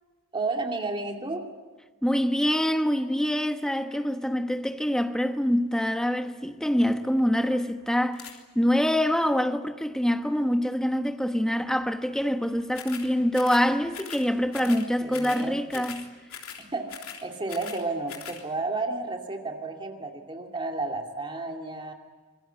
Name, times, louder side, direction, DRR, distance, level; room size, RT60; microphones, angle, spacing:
voice 1, 0.3-1.5 14.5-15.8 16.6-16.9 17.2-21.9, right 3 dB, 20° right, 2.4 m, -32 dB
voice 2, 2.0-16.0, equal, 5° left, 1.1 m, -25 dB
sound 1, 8.1-8.4 12.7-13.1 13.3-13.7 13.9-14.3 14.5-14.9 15.1-15.4 15.7-16.0 16.3-16.6 16.9-17.8 18.1-18.4, left 8 dB, 75° left, 3.5 m, -41 dB
26.0 x 22.0 x 9.2 m
head